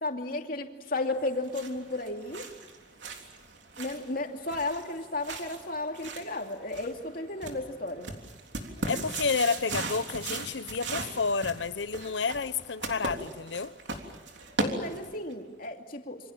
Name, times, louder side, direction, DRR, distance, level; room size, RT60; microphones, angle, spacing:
voice 1, 0.0-2.5 3.8-8.1 14.6-16.3, left 2 dB, 50° left, 2.7 m, -34 dB
sound 1, 1.1-15.3, right 3 dB, 80° right, 3.4 m, -38 dB
voice 2, 8.9-13.7, left 4 dB, 80° left, 0.9 m, -30 dB
27.5 x 26.0 x 7.3 m
head